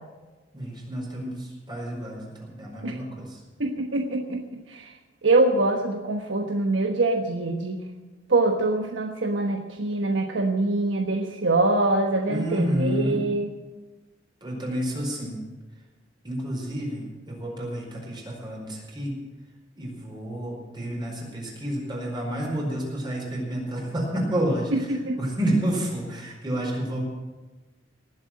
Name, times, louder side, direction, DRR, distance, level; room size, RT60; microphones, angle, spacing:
voice 1, 0.5-3.4 12.3-13.2 14.4-15.4 16.2-19.1 19.8-24.7 25.2-27.0, right 1 dB, 25° right, -1 dB, 4.7 m, -30 dB
voice 2, 3.6-4.9 5.2-7.8 8.3-13.5 24.7-25.2, right 2 dB, 85° right, 3 dB, 1.2 m, -24 dB
19.0 x 7.7 x 7.5 m, 1.2 s
head